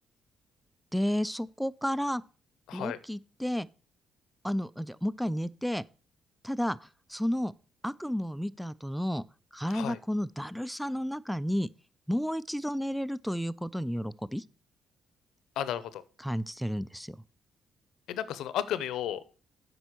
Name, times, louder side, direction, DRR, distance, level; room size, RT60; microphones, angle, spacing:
voice 1, 0.9-2.2 2.7-3.7 4.4-5.8 6.4-7.5 7.8-9.2 9.5-11.7 12.1-14.4 16.2-17.2, equal, ahead, 0.4 m, -32 dB
voice 2, 15.6-16.0 18.1-19.2, left 11 dB, 85° left, 0.7 m, -33 dB
8.0 x 5.4 x 6.0 m
cardioid pair, 90°, 0 cm